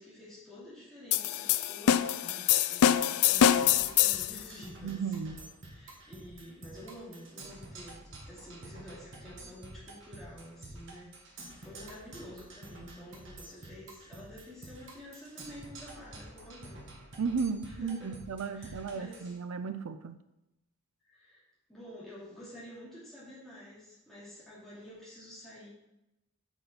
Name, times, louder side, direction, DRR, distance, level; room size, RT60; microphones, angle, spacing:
voice 1, 0.0-5.3 5.7-17.2 17.6-18.2 18.5-19.3 21.0-21.4 21.7-25.7, equal, ahead, 2.6 m, -49 dB
sound 1, 1.1-4.4, left 10 dB, 90° left, 0.4 m, -25 dB
Percussion, 3.4-19.4, right 2 dB, 55° right, 1.6 m, -49 dB
voice 2, 4.8-5.4 17.2-20.2, right 5 dB, 90° right, 0.5 m, -34 dB
8.9 x 5.7 x 4.4 m
head